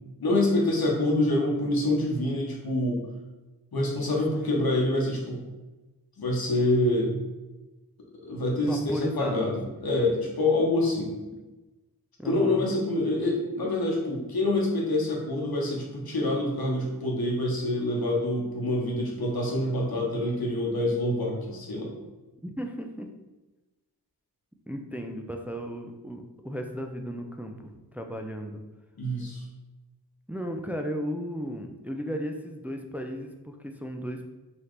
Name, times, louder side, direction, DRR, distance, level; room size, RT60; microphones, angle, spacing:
voice 1, 0.2-3.0 3.7-5.4 6.2-7.2 8.2-11.1 12.2-21.9 29.0-29.4, left 1 dB, 65° left, -2 dB, 1.1 m, -26 dB
voice 2, 8.3-9.7 12.2-12.6 22.4-23.1 24.7-28.6 30.3-34.3, equal, 5° right, 4 dB, 0.3 m, -35 dB
4.0 x 2.8 x 3.2 m, 1.1 s
wide cardioid pair, 60°, 39 cm